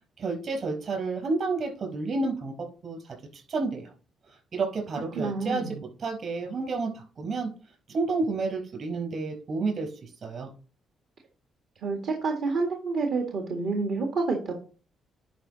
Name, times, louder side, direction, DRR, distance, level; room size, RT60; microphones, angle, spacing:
voice 1, 0.2-2.5 2.8-3.9 4.5-7.5 7.9-10.5, right 3 dB, 55° right, 2 dB, 4.7 m, -30 dB
voice 2, 5.2-5.8 11.8-14.5, right 3 dB, 70° right, 2 dB, 1.8 m, -28 dB
10.5 x 5.1 x 4.0 m, 0.38 s
cardioid pair, 90°, 0 cm